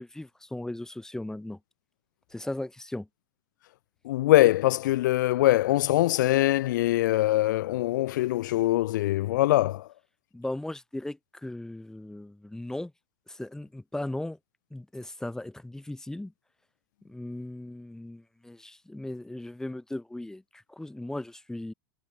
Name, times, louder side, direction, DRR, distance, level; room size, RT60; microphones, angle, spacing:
voice 1, 0.0-1.6 2.3-3.1 10.3-12.9 13.3-14.4 14.7-16.3 17.0-21.7, left 1 dB, 5° left, 5.1 m, -37 dB
voice 2, 4.0-9.9, left 16 dB, 70° left, 0.6 m, -23 dB
hypercardioid pair, 100°, 10 cm